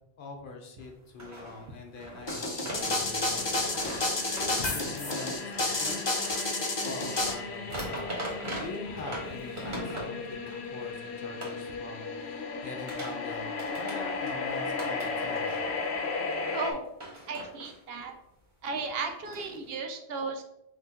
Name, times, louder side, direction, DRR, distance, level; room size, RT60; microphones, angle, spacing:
voice 1, 0.2-4.1 4.3-6.0 6.8-8.2 8.6-15.6, left 3 dB, 60° left, 2 dB, 0.8 m, -43 dB
sound 1, 0.8-0.9 1.2-6.6 7.0-10.7 11.4-11.6 12.6-13.3 13.6-14.4 14.7-16.0 16.3-16.8 17.0-18.0 18.7-19.8, right 1 dB, 50° right, 1.5 m, -41 dB
sound 2, 2.3-7.3, left 2 dB, 30° left, 0.6 m, -30 dB
sound 3, 2.6-16.7, left 4 dB, 85° left, 0.9 m, -36 dB
voice 2, 16.5-16.8 17.3-18.1 18.6-20.4, right 4 dB, 70° right, 5 dB, 0.8 m, -35 dB
5.7 x 2.9 x 2.8 m, 0.85 s
omnidirectional pair, 1.1 m